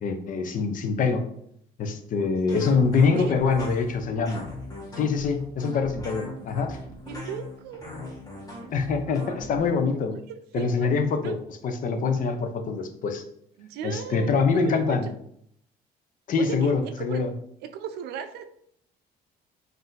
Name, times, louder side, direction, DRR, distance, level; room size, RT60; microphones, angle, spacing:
voice 1, 0.0-1.2 1.8-4.4 4.9-6.8 8.7-10.2 10.5-11.4 11.6-13.2 13.8-15.1 16.3-17.3, left 5 dB, 50° left, 7 dB, 0.6 m, -24 dB
sound 1, 2.5-9.6, left 2 dB, 20° left, 1.3 m, -39 dB
voice 2, 3.1-3.6 7.0-7.9 10.1-10.2 10.6-10.9 11.2-11.4 13.6-15.1 16.4-17.2 17.6-18.5, right 8 dB, 80° right, 9 dB, 0.5 m, -36 dB
4.0 x 2.6 x 3.9 m, 0.69 s
cardioid pair, 110°, 17 cm